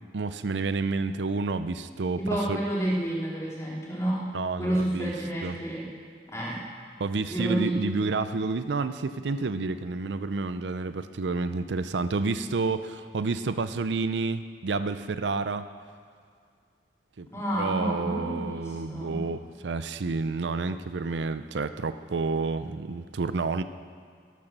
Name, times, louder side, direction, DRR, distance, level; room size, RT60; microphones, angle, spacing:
voice 1, 0.1-2.6 4.3-5.1 5.4-5.6 7.0-15.6 17.2-17.3 17.6-23.6, right 3 dB, 85° right, 11 dB, 0.5 m, -29 dB
voice 2, 2.2-5.9 6.3-6.6 7.3-8.0 17.3-19.2, right 1 dB, 15° left, -5 dB, 2.9 m, -30 dB
12.5 x 12.0 x 6.7 m, 2.2 s
head